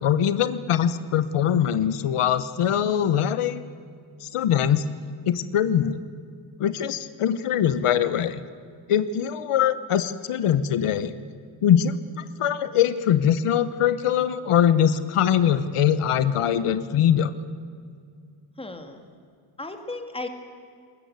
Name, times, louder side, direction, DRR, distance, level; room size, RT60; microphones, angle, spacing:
voice 1, 0.0-3.6 4.2-4.8 5.3-6.0 6.6-8.4 8.9-11.1 11.6-17.3, left 9 dB, 85° left, 13 dB, 1.1 m, -22 dB
voice 2, 18.6-19.0 19.6-20.3, left 2 dB, 10° left, 6 dB, 2.1 m, -35 dB
21.0 x 20.5 x 9.6 m, 2.2 s
wide cardioid pair, 155°, 50 cm